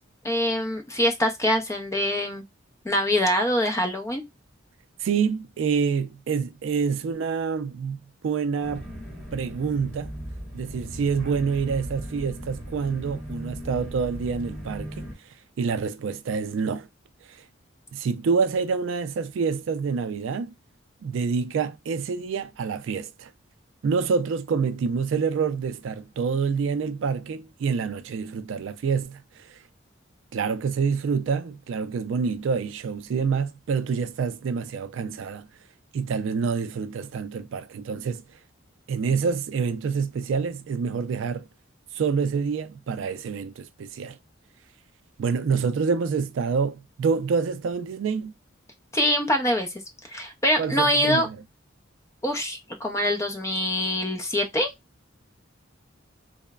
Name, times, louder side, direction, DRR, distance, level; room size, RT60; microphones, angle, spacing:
voice 1, 0.2-2.4 2.8-4.2 48.9-49.7 50.1-51.3 52.2-54.7, left 1 dB, 15° left, 0.5 m, -24 dB
voice 2, 5.0-8.9 9.3-10.1 10.5-15.1 15.6-16.9 17.3-17.4 17.9-20.5 21.0-23.3 23.8-29.6 30.3-35.5 35.9-38.2 38.9-41.5 41.9-44.2 45.2-48.3 50.6-51.4, right 5 dB, 75° right, 0.3 m, -27 dB
sound 1, 8.6-15.1, equal, 5° right, 1.1 m, -38 dB
3.0 x 2.1 x 2.2 m
head